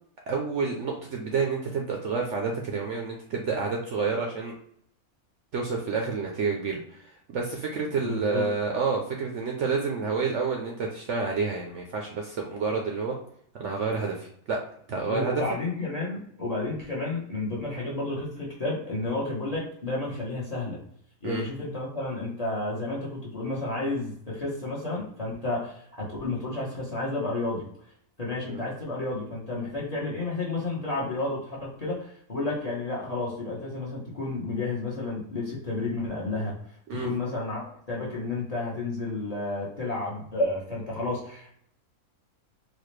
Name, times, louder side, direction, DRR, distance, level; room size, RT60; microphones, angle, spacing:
voice 1, 0.3-4.5 5.5-13.2 13.5-14.6 14.9-15.4 21.2-21.4 28.5-28.6 36.9-37.1, right 4 dB, 65° right, 1 dB, 0.8 m, -29 dB
voice 2, 8.0-8.5 15.1-20.8 21.2-27.7 28.2-36.6 36.9-41.5, left 2 dB, 30° left, -4 dB, 0.8 m, -31 dB
4.1 x 2.3 x 3.1 m, 0.67 s
omnidirectional pair, 1.6 m